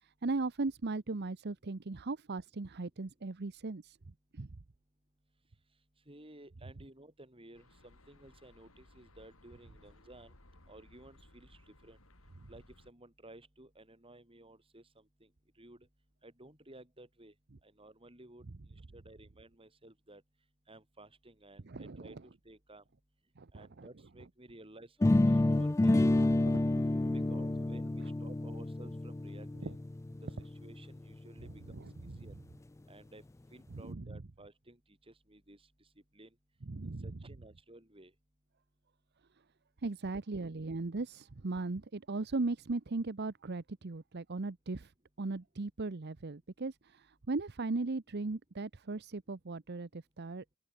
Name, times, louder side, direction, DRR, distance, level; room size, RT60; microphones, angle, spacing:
voice 1, 0.0-4.0 4.3-4.5 21.7-22.2 23.4-23.9 29.6-29.7 31.7-32.3 33.7-34.2 36.6-37.2 39.8-44.9 45.2-50.4, right 3 dB, 50° right, 0.8 m, -38 dB
voice 2, 6.1-10.3 10.7-12.0 12.5-15.3 15.6-15.9 16.2-17.3 17.6-18.5 18.9-20.2 20.7-22.8 23.5-26.5 27.1-29.7 30.2-32.3 32.9-33.2 33.5-34.8 35.1-35.7 36.1-36.3 37.0-38.1, right 1 dB, 25° right, 4.9 m, -55 dB
sound 1, 7.5-12.9, left 1 dB, 70° left, 3.8 m, -61 dB
sound 2, 25.0-30.9, left 2 dB, 15° left, 0.3 m, -29 dB
open air
head